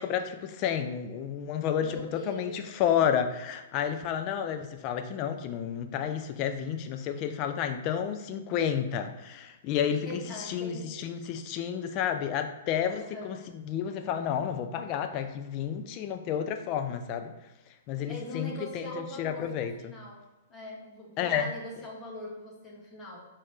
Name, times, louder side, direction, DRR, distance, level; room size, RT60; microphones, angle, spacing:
voice 1, 0.0-17.3 17.9-19.7 21.2-21.5, left 8 dB, 40° left, 7 dB, 0.5 m, -31 dB
voice 2, 1.8-2.8 10.0-11.1 13.0-13.3 18.1-20.2 20.5-23.3, left 1 dB, 20° left, -3 dB, 1.5 m, -42 dB
4.2 x 3.7 x 3.2 m, 1.1 s
figure-of-eight pair, 110°, 0 cm